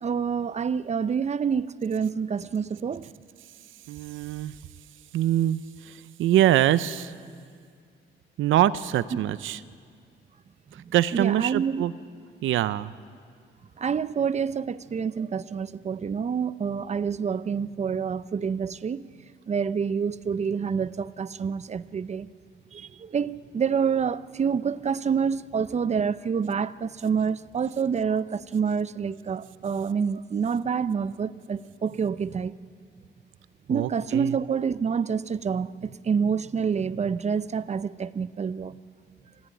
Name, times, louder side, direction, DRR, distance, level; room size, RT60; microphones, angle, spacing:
voice 1, 0.0-3.1 10.8-11.8 13.8-19.0 19.5-22.3 22.7-32.5 33.7-38.8, right 6 dB, 35° right, 0.7 m, -27 dB
voice 2, 3.9-4.5 5.1-7.1 8.4-9.6 10.9-11.9 12.4-12.9 33.7-34.3, right 12 dB, 80° right, 0.7 m, -24 dB
26.0 x 14.5 x 9.2 m
cardioid pair, 90°, 20 cm